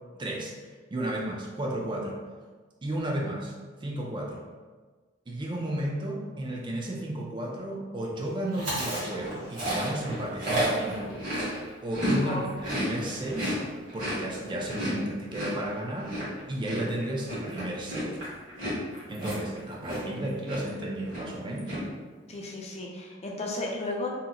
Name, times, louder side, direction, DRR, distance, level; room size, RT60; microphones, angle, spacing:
voice 1, 0.1-0.5 0.9-2.2 2.8-3.5 3.8-4.4 5.3-11.2 11.8-12.4 12.7-13.6 13.9-16.1 16.5-18.2 19.1-21.8, right 1 dB, 25° right, -1 dB, 0.4 m, -33 dB
Chewing mastication, 8.5-12.2 12.5-20.2 20.5-20.8 21.1-21.8, equal, 45° right, 1.3 m, -32 dB
voice 2, 22.3-24.1, left 2 dB, 35° left, -1 dB, 0.5 m, -34 dB
2.8 x 2.0 x 3.7 m, 1.4 s
head